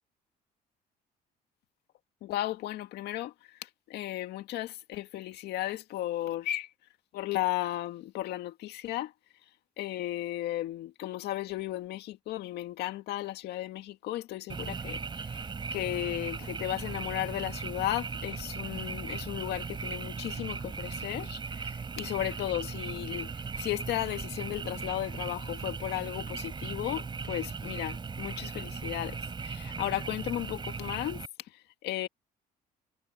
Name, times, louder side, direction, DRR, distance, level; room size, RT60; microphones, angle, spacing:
voice 1, 2.2-3.3 3.6-6.7 7.1-9.1 9.8-15.4 15.7-23.3 23.6-31.2 31.8-32.1, left 14 dB, 80° left, 2.0 m, -35 dB
Frog, 14.5-31.3, right 5 dB, 30° right, 3.7 m, -38 dB
cardioid pair, 110°, 17 cm